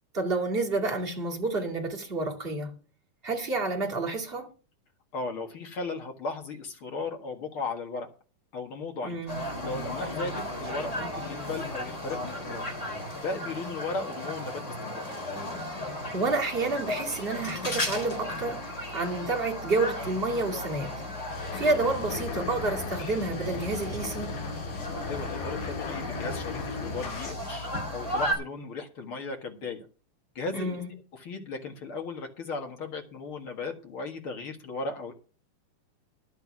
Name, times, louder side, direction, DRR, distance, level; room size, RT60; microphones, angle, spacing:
voice 1, 0.1-2.7 3.2-4.5 9.0-9.4 16.1-18.6 18.9-21.0 21.5-24.3 30.5-30.9, right 3 dB, 20° right, 1.9 m, -29 dB
voice 2, 5.1-8.1 8.5-9.3 9.6-12.8 13.2-15.1 24.7-27.7 27.9-29.9 30.4-35.1, left 3 dB, 45° left, 2.0 m, -36 dB
sound 1, 9.3-28.3, left 1 dB, 20° left, 4.2 m, -35 dB
sound 2, 21.3-27.3, left 4 dB, 75° left, 4.2 m, -36 dB
11.5 x 8.5 x 6.1 m
omnidirectional pair, 4.1 m